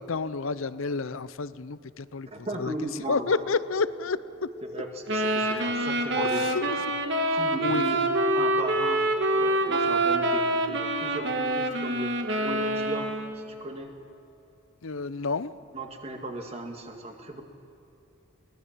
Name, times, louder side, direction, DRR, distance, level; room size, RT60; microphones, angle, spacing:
voice 1, 0.0-2.7 3.1-4.5 5.5-5.7 6.2-6.8 7.6-7.8 14.8-15.5, left 4 dB, 70° left, 16 dB, 0.6 m, -30 dB
voice 2, 2.3-3.4 4.7-6.5 7.3-9.0 9.3-12.1 12.4-13.9 15.7-17.4, right 1 dB, 30° right, 3 dB, 1.9 m, -36 dB
sound 1, 2.9-7.1, left 1 dB, 10° right, 1.4 m, -44 dB
sound 2, 5.1-13.5, right 1 dB, 55° right, 1.6 m, -26 dB
22.5 x 18.0 x 7.4 m, 2.8 s
head